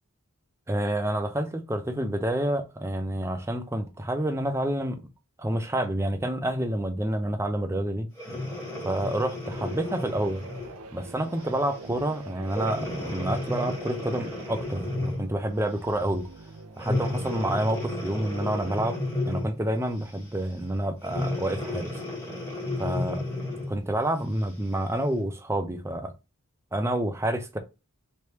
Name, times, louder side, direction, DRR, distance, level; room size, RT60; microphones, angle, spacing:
voice 1, 0.7-5.0 5.4-8.1 8.8-10.4 10.9-16.2 16.8-18.9 19.3-21.9 22.8-23.2 23.7-26.1 26.7-27.6, right 1 dB, 10° right, 0.5 m, -28 dB
Breathing, 8.2-10.8 11.4-11.6 12.5-15.4 16.8-19.6 21.0-23.8 24.4-24.5, left 2 dB, 10° left, 1.3 m, -33 dB
sound 1, 9.5-18.8, right 2 dB, 80° right, 0.6 m, -43 dB
3.3 x 3.1 x 2.9 m
head